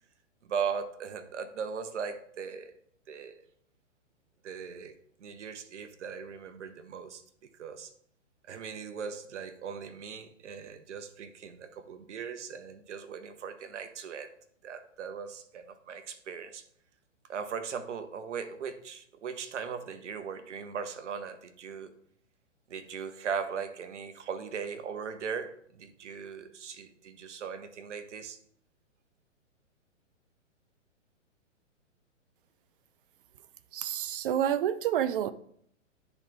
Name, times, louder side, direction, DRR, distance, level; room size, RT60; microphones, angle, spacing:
voice 1, 0.4-2.7 3.1-3.4 4.4-4.9 5.2-7.2 7.6-7.9 8.5-14.3 14.6-16.6 17.3-21.9 22.7-28.4, right 6 dB, 65° right, 1.0 m, -38 dB
voice 2, 33.7-35.3, right 10 dB, 45° right, 0.5 m, -28 dB
9.5 x 4.0 x 3.5 m
hypercardioid pair, 130°, 38 cm